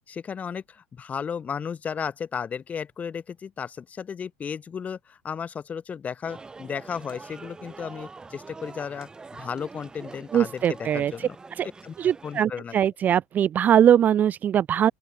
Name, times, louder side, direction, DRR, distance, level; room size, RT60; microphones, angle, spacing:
voice 1, 0.1-11.4 11.8-11.9 12.2-12.8, left 7 dB, 25° left, 1.5 m, -34 dB
sound 1, 6.2-12.4, right 4 dB, 15° right, 0.9 m, -45 dB
voice 2, 10.3-11.3 11.6-11.7 12.0-14.9, right 9 dB, 30° right, 0.4 m, -21 dB
open air
supercardioid pair, 120°, 6 cm